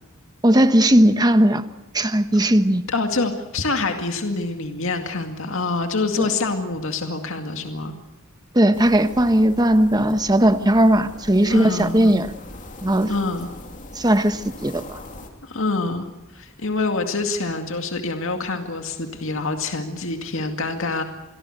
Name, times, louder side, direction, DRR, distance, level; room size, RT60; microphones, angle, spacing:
voice 1, 0.4-1.6 1.9-2.8 6.2-6.3 8.5-12.3 12.8-13.1 13.9-15.0, right 1 dB, 20° right, 10 dB, 1.2 m, -17 dB
voice 2, 2.9-7.9 11.5-12.2 13.1-13.5 15.4-16.1 16.3-21.0, left 3 dB, 65° left, 5 dB, 2.3 m, -26 dB
sound 1, 8.7-15.3, left 1 dB, 40° left, 3.0 m, -41 dB
27.5 x 22.0 x 6.8 m, 0.98 s
head